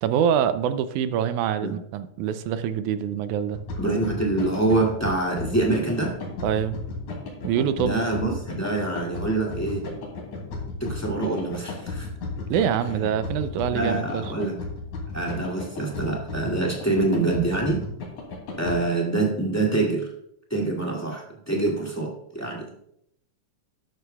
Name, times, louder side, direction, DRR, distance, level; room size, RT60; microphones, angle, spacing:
voice 1, 0.0-3.6 6.4-6.8 7.4-8.0 12.5-14.2, right 8 dB, 80° right, 11 dB, 2.0 m, -25 dB
sound 1, 3.5-18.8, left 3 dB, 70° left, 3.8 m, -33 dB
voice 2, 3.8-6.2 7.8-9.8 10.8-12.1 13.7-14.5 15.1-17.9 18.6-20.1 20.5-22.7, right 2 dB, 5° left, -2 dB, 1.5 m, -25 dB
12.5 x 11.0 x 2.3 m, 0.74 s
omnidirectional pair, 3.6 m